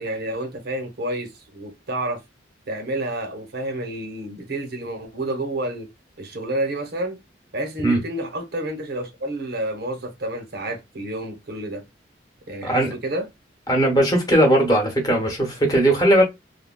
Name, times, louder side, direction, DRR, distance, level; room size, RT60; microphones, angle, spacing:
voice 1, 0.0-2.2 2.7-5.9 6.2-7.2 7.5-11.8 12.5-13.3, right 1 dB, 55° right, 0.8 m, -29 dB
voice 2, 12.6-12.9 13.7-16.2, right 1 dB, 20° left, 1.0 m, -18 dB
3.4 x 2.2 x 2.2 m
head